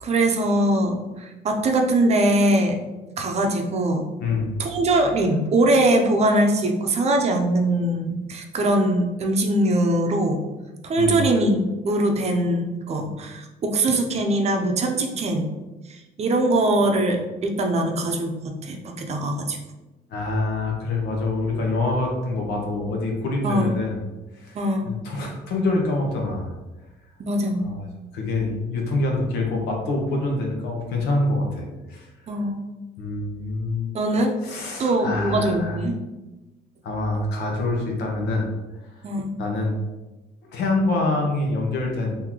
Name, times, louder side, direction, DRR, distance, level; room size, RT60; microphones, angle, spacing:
voice 1, 0.0-2.8 3.2-4.1 4.6-10.4 10.8-15.5 15.9-19.6 23.4-23.8 24.5-24.9 27.2-27.6 32.3-32.6 33.9-34.3 34.8-36.0 39.0-39.3, right 1 dB, 40° right, 4 dB, 0.5 m, -22 dB
voice 2, 20.1-24.0 24.3-24.6 24.9-26.5 27.6-27.9 28.1-32.1 33.0-33.9 34.4-35.8 36.8-38.5 39.4-39.8 40.5-42.2, left 2 dB, 85° left, 0 dB, 0.9 m, -25 dB
3.7 x 2.7 x 3.0 m, 1.1 s
cardioid pair, 110°, 17 cm